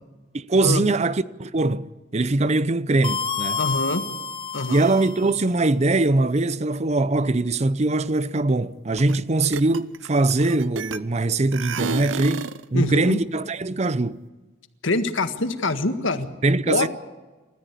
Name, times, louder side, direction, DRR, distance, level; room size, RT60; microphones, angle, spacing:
voice 1, 0.3-3.6 4.7-14.2 16.4-16.9, right 2 dB, 35° right, 0.6 m, -22 dB
sound 1, 3.0-5.4, left 5 dB, 25° left, 0.9 m, -29 dB
voice 2, 3.6-4.0 4.5-4.8 12.7-13.2 14.8-16.3 16.7-16.9, left 2 dB, 85° left, 1.7 m, -24 dB
sound 2, 9.0-9.2 9.4-11.2 11.5-12.6, right 4 dB, 90° right, 0.8 m, -30 dB
29.0 x 14.0 x 8.3 m
head